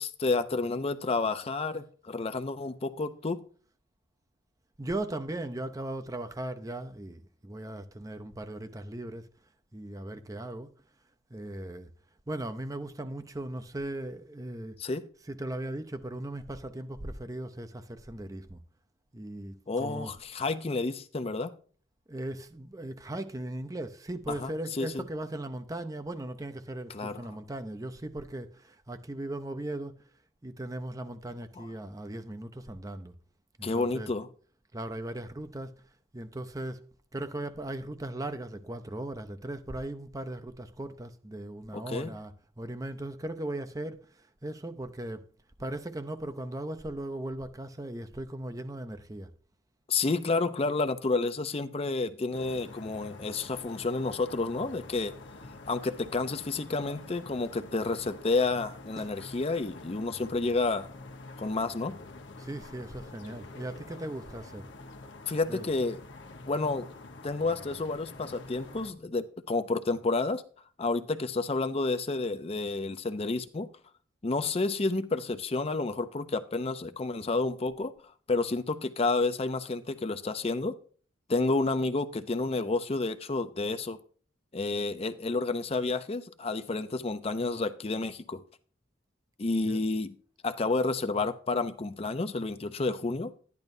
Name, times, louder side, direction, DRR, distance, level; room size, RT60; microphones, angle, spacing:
voice 1, 0.0-3.4 14.8-15.0 19.7-21.5 24.3-24.5 24.8-25.0 26.9-27.2 31.6-31.7 33.6-34.3 41.7-42.1 49.9-55.1 55.7-60.9 61.4-62.0 65.3-66.0 66.5-66.9 67.2-70.4 70.8-73.7 74.2-77.9 78.3-80.8 81.3-84.0 84.5-88.4 89.4-90.1 90.4-93.3, left 3 dB, 30° left, 0.5 m, -30 dB
voice 2, 4.8-9.3 9.7-10.7 11.3-11.9 12.3-14.8 15.3-18.6 19.1-20.1 22.1-30.0 30.4-33.1 33.6-34.1 34.7-35.7 36.1-36.8 37.1-42.3 42.6-45.2 45.6-49.3 59.0-59.1 62.4-64.7 65.5-65.7 89.7-89.8, right 1 dB, 20° right, 0.6 m, -38 dB
sound 1, 52.3-68.9, left 2 dB, 65° left, 1.1 m, -47 dB
12.0 x 10.5 x 2.7 m
head